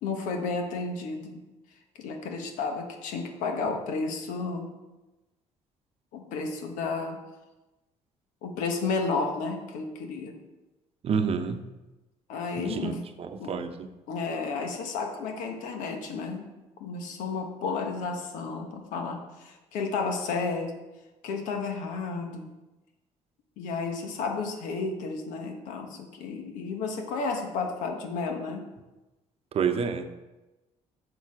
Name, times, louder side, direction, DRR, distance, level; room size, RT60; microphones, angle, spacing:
voice 1, 0.0-1.5 1.9-4.7 6.1-7.2 8.4-10.3 12.3-13.0 13.4-13.5 14.1-16.5 16.8-20.7 21.2-22.5 23.6-28.7, left 4 dB, 85° left, 4 dB, 1.3 m, -32 dB
voice 2, 11.0-11.6 12.6-12.9 13.2-13.7 29.5-30.1, right 6 dB, 50° right, 8 dB, 0.8 m, -28 dB
6.8 x 6.6 x 4.8 m, 1.1 s
cardioid pair, 100°, 13 cm